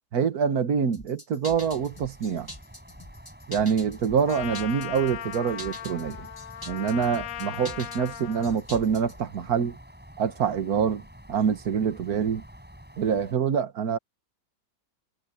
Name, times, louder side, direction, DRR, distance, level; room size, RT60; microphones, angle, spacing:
voice 1, 0.1-2.5 3.5-6.3 6.7-9.8 10.2-11.0 11.3-12.4 13.0-14.0, right 7 dB, 60° right, 1.8 m, -25 dB
sound 1, 0.9-9.2, left 1 dB, 10° left, 2.1 m, -44 dB
sound 2, 1.5-13.3, equal, 5° right, 6.3 m, -49 dB
Trumpet, 4.3-8.6, left 12 dB, 65° left, 0.9 m, -38 dB
omnidirectional pair, 1.8 m